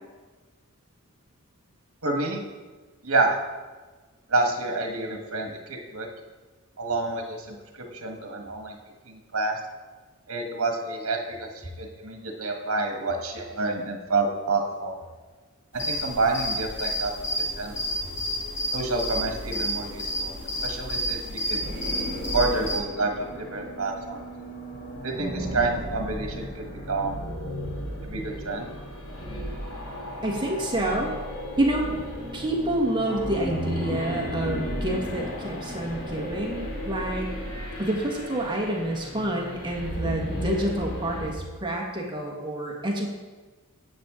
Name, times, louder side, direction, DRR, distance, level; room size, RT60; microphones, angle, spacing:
voice 1, 2.0-2.4 3.0-3.4 4.3-6.1 6.8-8.8 9.1-9.6 10.3-11.5 11.8-15.0 15.7-17.1 17.6-17.7 18.7-20.3 20.6-21.6 22.3-24.3 25.0-27.2 28.0-28.7, right 3 dB, 70° right, 2 dB, 1.4 m, -28 dB
sound 1, 15.7-22.8, equal, 50° left, 2.8 m, -30 dB
sound 2, 21.6-41.3, equal, 70° left, 3.0 m, -35 dB
voice 2, 30.2-31.1 31.6-31.9 32.3-37.3 37.8-43.1, right 1 dB, 20° right, -1 dB, 1.5 m, -28 dB
9.5 x 8.2 x 3.7 m, 1.3 s
head